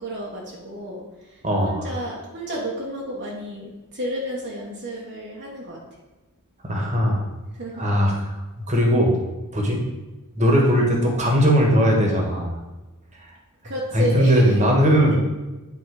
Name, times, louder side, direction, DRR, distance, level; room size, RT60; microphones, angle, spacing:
voice 1, 0.0-5.8 7.5-7.9 13.6-14.6 15.0-15.2, equal, 50° right, -3 dB, 1.1 m, -31 dB
voice 2, 1.4-1.9 6.6-7.2 7.7-8.1 8.7-9.1 9.5-9.8 10.3-12.6 13.9-15.2, equal, 35° right, 0 dB, 1.4 m, -19 dB
9.8 x 3.9 x 4.8 m, 1.1 s
head